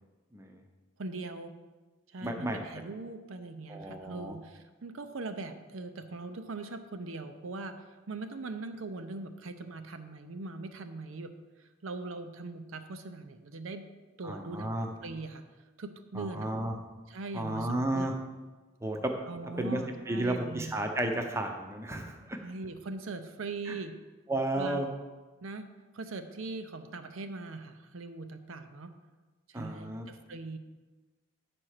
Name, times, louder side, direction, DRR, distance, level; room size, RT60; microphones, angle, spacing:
voice 1, 0.3-0.6 2.2-2.6 3.7-4.4 14.2-14.9 16.1-16.7 17.3-18.1 18.8-19.1 19.6-19.8 20.1-22.4 23.7-23.8 24.3-24.9 29.5-30.1, right 1 dB, 15° right, 3 dB, 0.6 m, -32 dB
voice 2, 1.0-1.5 2.1-11.3 11.6-13.8 14.2-15.4 15.8-16.5 17.1-18.1 19.2-20.7 22.4-23.9 24.6-24.8 25.4-25.7 25.9-28.9 29.5-30.6, right 3 dB, 80° right, 8 dB, 0.6 m, -41 dB
8.8 x 4.3 x 6.5 m, 1.2 s
head